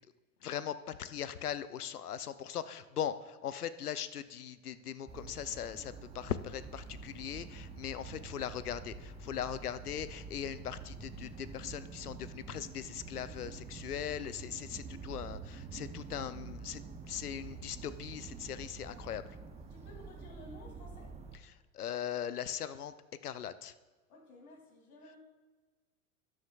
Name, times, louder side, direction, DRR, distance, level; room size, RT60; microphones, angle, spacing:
voice 1, 0.4-16.8 17.1-19.4 21.7-22.9 23.2-23.7, left 9 dB, 90° left, 14 dB, 0.7 m, -40 dB
sound 1, 5.1-21.4, right 4 dB, 15° right, 0.8 m, -47 dB
voice 2, 19.7-21.1 24.1-25.2, left 1 dB, 75° left, 1 dB, 2.9 m, -54 dB
13.0 x 9.8 x 2.4 m, 1.3 s
hypercardioid pair, 95°, 44 cm